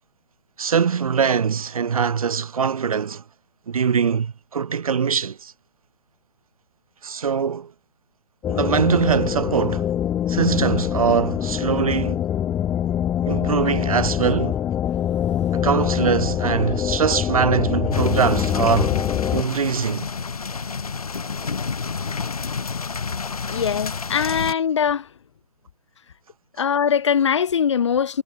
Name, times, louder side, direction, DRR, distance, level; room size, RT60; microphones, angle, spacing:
voice 1, 0.6-3.2 3.7-5.5 7.0-7.7 8.5-9.9 10.3-12.2 13.3-14.6 15.5-19.0 19.3-20.1, right 6 dB, 60° right, 0.5 m, -22 dB
sound 1, 8.4-19.4, left 10 dB, 10° left, 0.9 m, -24 dB
sound 2, 17.9-24.5, left 5 dB, 65° left, 1.3 m, -29 dB
voice 2, 23.5-25.1 26.6-28.2, left 7 dB, 45° left, 0.6 m, -21 dB
figure-of-eight pair, 135°, 20 cm